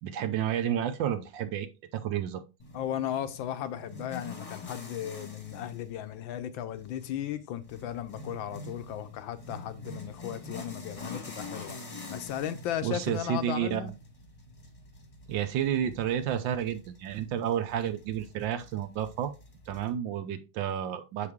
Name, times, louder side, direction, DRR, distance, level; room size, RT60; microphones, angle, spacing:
voice 1, 0.0-2.4 12.8-13.9 15.3-19.3 19.7-21.3, right 10 dB, 70° right, 1.2 m, -31 dB
sound 1, 2.6-19.9, left 2 dB, 20° left, 1.0 m, -46 dB
voice 2, 2.7-11.8 12.1-13.9, left 11 dB, 75° left, 1.3 m, -36 dB
6.6 x 4.8 x 3.5 m
omnidirectional pair, 2.3 m